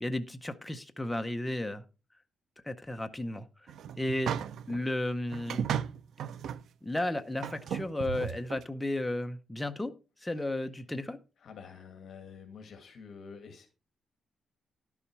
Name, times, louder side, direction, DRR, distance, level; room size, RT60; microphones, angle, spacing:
voice 1, 0.0-1.8 2.6-3.5 4.0-4.3 4.7-5.6 6.8-9.9 10.2-11.2, left 1 dB, 5° left, 7 dB, 0.6 m, -33 dB
sound 1, 3.7-4.8 5.3-6.6 7.0-7.1 7.4-8.6, right 8 dB, 75° right, 0.5 m, -35 dB
voice 2, 11.4-13.7, left 6 dB, 55° left, 5 dB, 1.8 m, -48 dB
11.0 x 7.0 x 4.6 m, 0.31 s
wide cardioid pair, 165°, 0 cm